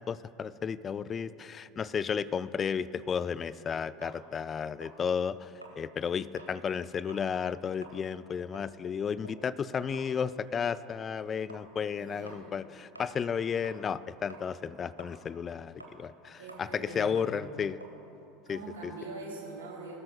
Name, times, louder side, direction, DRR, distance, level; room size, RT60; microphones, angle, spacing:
voice 1, 0.0-17.8 18.5-18.9, left 7 dB, 30° left, 17 dB, 0.4 m, -33 dB
sound 1, 4.0-6.6 7.0-7.3 7.7-14.0 14.3-19.1, right 2 dB, 90° right, 1.2 m, -52 dB
voice 2, 11.7-12.5 16.4-17.7 18.5-19.9, right 3 dB, 70° right, -2 dB, 3.2 m, -44 dB
20.0 x 13.0 x 2.4 m, 2.9 s
figure-of-eight pair, 75°, 0 cm